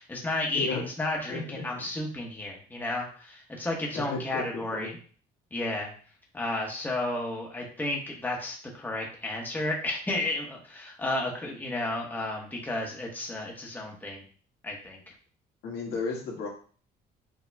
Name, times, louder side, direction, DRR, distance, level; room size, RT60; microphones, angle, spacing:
voice 1, 0.0-4.9 5.5-5.9 6.3-14.2 14.6-15.0, left 2 dB, 10° left, -1 dB, 1.2 m, -32 dB
voice 2, 0.5-0.8 1.3-1.4 3.9-4.9 15.6-16.5, left 4 dB, 75° left, -3 dB, 1.7 m, -33 dB
7.1 x 2.9 x 2.2 m, 0.42 s
cardioid pair, 110°, 17 cm